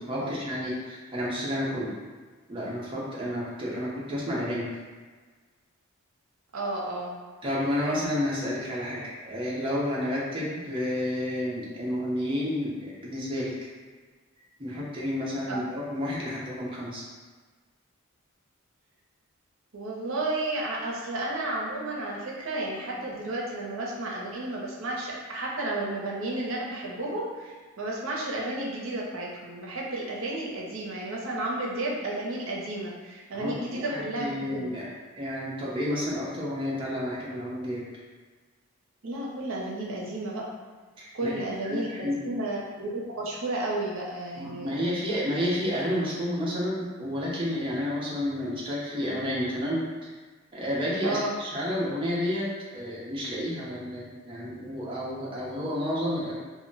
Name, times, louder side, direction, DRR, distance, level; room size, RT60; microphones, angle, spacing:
voice 1, 0.0-1.9 2.5-4.7 7.4-13.6 14.6-17.0 33.4-34.9 35.1-37.8 41.0-41.3 41.6-42.2 44.4-49.8 50.5-56.3, left 1 dB, 25° right, -6 dB, 0.5 m, -30 dB
voice 2, 6.5-7.1 15.5-15.6 19.7-34.7 39.0-40.5 41.1-44.7 51.0-51.4, right 2 dB, 65° right, -3 dB, 0.6 m, -32 dB
2.1 x 2.1 x 3.8 m, 1.4 s
head